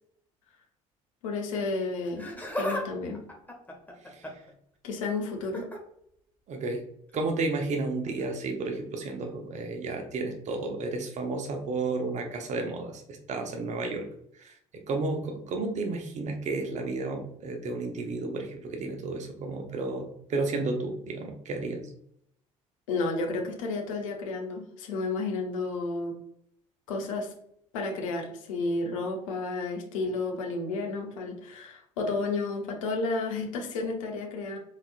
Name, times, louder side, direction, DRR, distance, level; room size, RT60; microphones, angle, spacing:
voice 1, 1.2-2.3 2.6-3.2 4.8-5.7 22.9-26.1 26.9-27.3 27.7-34.6, left 3 dB, 70° left, 2 dB, 0.9 m, -31 dB
Laughter, 2.0-2.9 3.1-4.5 5.4-5.8 7.1-7.3 8.2-8.3, left 1 dB, 10° left, 1.2 m, -35 dB
voice 2, 6.5-6.8 7.1-14.0 14.4-14.5 14.9-21.9, right 3 dB, 45° right, 3 dB, 0.9 m, -32 dB
4.2 x 4.0 x 2.5 m, 0.72 s
figure-of-eight pair, 55°, 17 cm